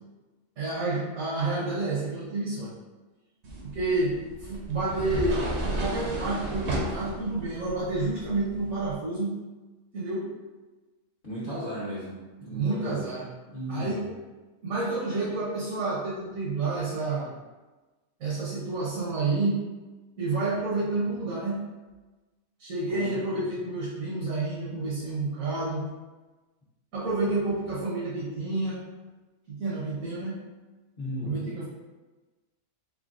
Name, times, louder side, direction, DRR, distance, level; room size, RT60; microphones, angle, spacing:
voice 1, 0.6-2.7 3.6-4.1 4.4-9.3 9.9-10.2 12.5-13.2 13.7-14.0 14.6-17.3 18.2-19.6 20.2-21.6 22.6-25.8 26.9-28.8 29.5-30.4 31.2-31.7, right 3 dB, 80° right, -7 dB, 1.3 m, -29 dB
sound 1, 3.4-8.9, right 1 dB, 60° right, 1.0 m, -34 dB
voice 2, 11.2-13.0 13.5-14.1 22.9-23.4 31.0-31.6, equal, 45° left, -9 dB, 1.0 m, -36 dB
3.9 x 3.3 x 2.5 m, 1.2 s
omnidirectional pair, 1.4 m